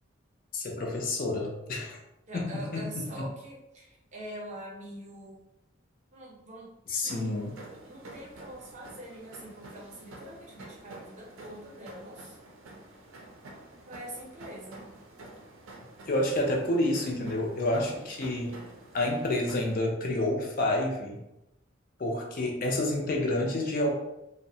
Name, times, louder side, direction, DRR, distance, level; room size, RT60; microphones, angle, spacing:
voice 1, 0.5-2.0 2.3-3.3 6.9-7.6 16.1-18.6 18.9-21.2 22.0-23.9, left 1 dB, 45° left, 0 dB, 0.4 m, -29 dB
voice 2, 2.3-5.4 6.1-6.7 7.0-7.2 7.8-12.4 13.9-14.9, right 1 dB, 35° right, -3 dB, 0.6 m, -44 dB
sound 1, 7.1-19.8, right 2 dB, 80° right, 0.5 m, -49 dB
2.7 x 2.0 x 2.6 m, 0.90 s
head